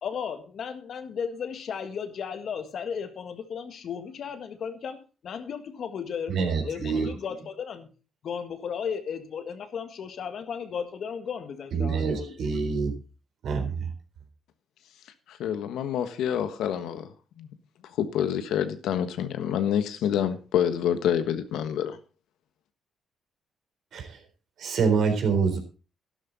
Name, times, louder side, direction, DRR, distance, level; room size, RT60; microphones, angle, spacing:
voice 1, 0.0-5.0 5.2-7.9 8.2-12.5, left 7 dB, 60° left, 1.7 m, -35 dB
voice 2, 6.3-7.1 11.7-12.9 13.4-13.9 23.9-24.2 24.6-25.6, right 5 dB, 70° right, 3.8 m, -26 dB
voice 3, 15.3-17.1 17.4-17.5 18.0-22.0, left 9 dB, 85° left, 1.3 m, -27 dB
12.0 x 12.0 x 4.1 m
cardioid pair, 90°, 0 cm